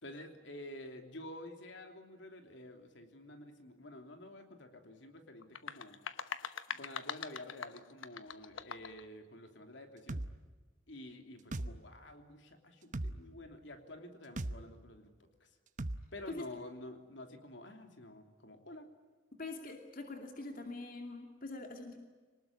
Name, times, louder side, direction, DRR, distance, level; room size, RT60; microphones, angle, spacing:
voice 1, 0.0-6.0 6.8-10.2 10.9-15.1 15.4-15.5 16.1-18.9, left 1 dB, 65° left, 5 dB, 3.1 m, -50 dB
sound 1, 5.4-9.0, left 6 dB, 85° left, 1.1 m, -43 dB
sound 2, 10.1-10.3 11.5-11.7 12.9-13.1 14.4-14.6 15.8-16.0, right 1 dB, 40° right, 0.9 m, -37 dB
voice 2, 19.4-22.0, left 2 dB, 45° left, 3 dB, 2.5 m, -44 dB
25.5 x 19.5 x 9.7 m, 1.4 s
head